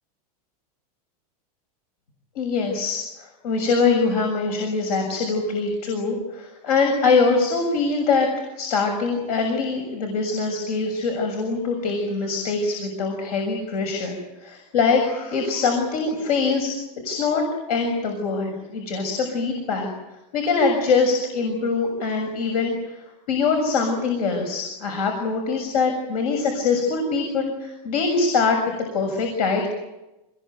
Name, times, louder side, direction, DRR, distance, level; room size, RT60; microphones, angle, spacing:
voice 1, 2.4-8.3 8.6-16.7 17.0-17.4 17.7-19.9 20.3-22.8 23.3-28.6 28.9-29.7, left 4 dB, 75° left, 4 dB, 6.8 m, -23 dB
27.0 x 21.0 x 9.3 m, 1.0 s
supercardioid pair, 180°, 20 cm